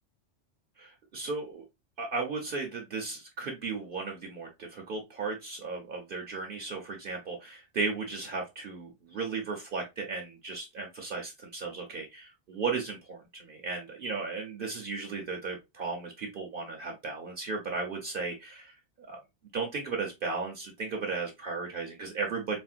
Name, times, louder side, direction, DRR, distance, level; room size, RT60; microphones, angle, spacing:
voice 1, 0.8-1.6 2.0-19.2 19.5-22.6, right 4 dB, 55° right, 1 dB, 0.8 m, -35 dB
4.2 x 2.0 x 2.4 m, 0.22 s
omnidirectional pair, 1.2 m